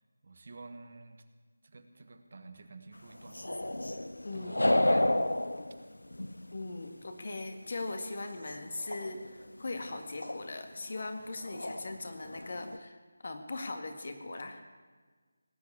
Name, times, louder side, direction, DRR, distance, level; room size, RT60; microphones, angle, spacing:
voice 1, 0.2-1.2 1.6-3.6 4.3-5.3, right 3 dB, 50° right, 8 dB, 1.4 m, -49 dB
sound 1, 3.3-6.8 8.5-8.6 8.8-9.3 10.2-10.5 11.0-11.1 11.4-12.0 12.2-12.8, left 1 dB, 80° left, 0.7 m, -31 dB
voice 2, 6.5-14.6, left 2 dB, 50° left, 6 dB, 1.8 m, -40 dB
18.0 x 8.4 x 8.4 m, 1.4 s
figure-of-eight pair, 160°, 0 cm